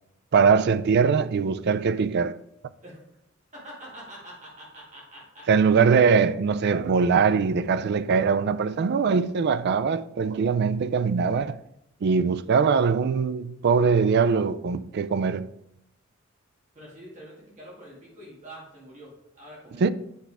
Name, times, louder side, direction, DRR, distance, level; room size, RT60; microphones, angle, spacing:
voice 1, 0.3-2.4 5.5-11.6 12.0-15.5 19.8-19.9, right 5 dB, 55° right, 0.4 m, -22 dB
voice 2, 3.5-5.5 16.8-19.8, right 1 dB, 35° right, 2.1 m, -45 dB
8.1 x 6.0 x 3.4 m
head